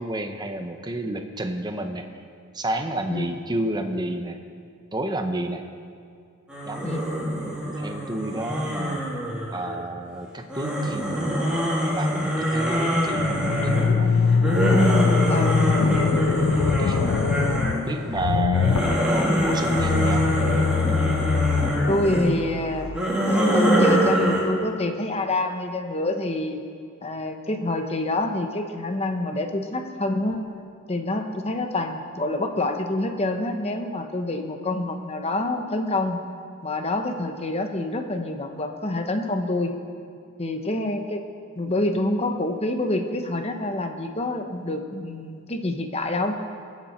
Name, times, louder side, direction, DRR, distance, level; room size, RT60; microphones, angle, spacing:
voice 1, 0.0-2.1 2.5-4.4 4.9-5.6 6.7-6.8 7.6-9.0 9.5-14.1 16.6-17.0 17.5-20.3, right 1 dB, 20° right, 6 dB, 0.9 m, -31 dB
sound 1, 6.5-9.9 10.5-18.0 18.4-22.3 22.8-24.4, equal, 5° right, 2.4 m, -24 dB
sound 2, 13.1-23.0, left 5 dB, 85° left, 0.4 m, -24 dB
voice 2, 21.9-22.9 23.2-26.6 27.0-30.4 30.9-36.2 36.6-39.7 40.4-41.2 41.6-46.4, left 2 dB, 30° left, 5 dB, 1.1 m, -27 dB
22.0 x 8.4 x 4.4 m, 2.4 s
head